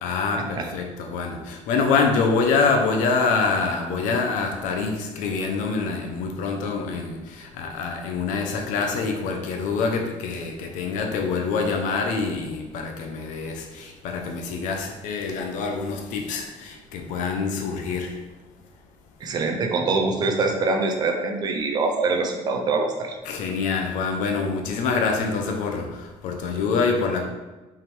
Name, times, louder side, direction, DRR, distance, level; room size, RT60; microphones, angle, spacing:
voice 1, 0.0-18.3 23.2-27.2, left 4 dB, 85° left, 3 dB, 1.0 m, -25 dB
voice 2, 19.2-23.2, right 3 dB, 35° right, 4 dB, 0.7 m, -24 dB
5.7 x 3.6 x 4.7 m, 1.2 s
cardioid pair, 180°, 13 cm